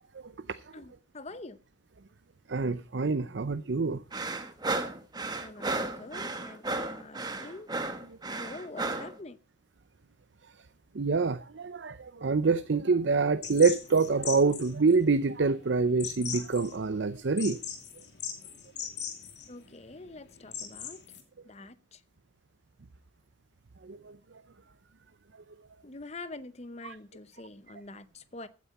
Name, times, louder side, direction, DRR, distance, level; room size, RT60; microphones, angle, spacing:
voice 1, 0.7-1.6 5.4-7.7 8.4-9.4 19.5-21.0 21.4-22.0 25.8-28.5, left 2 dB, 35° left, 0.8 m, -45 dB
voice 2, 2.5-4.0 8.1-8.2 10.9-17.6 23.8-24.2 26.8-27.0, right 4 dB, 65° right, 0.6 m, -26 dB
sound 1, 4.1-9.1, right 2 dB, 20° right, 1.3 m, -34 dB
sound 2, 13.4-21.2, left 8 dB, 60° left, 2.7 m, -40 dB
15.0 x 9.3 x 4.2 m
head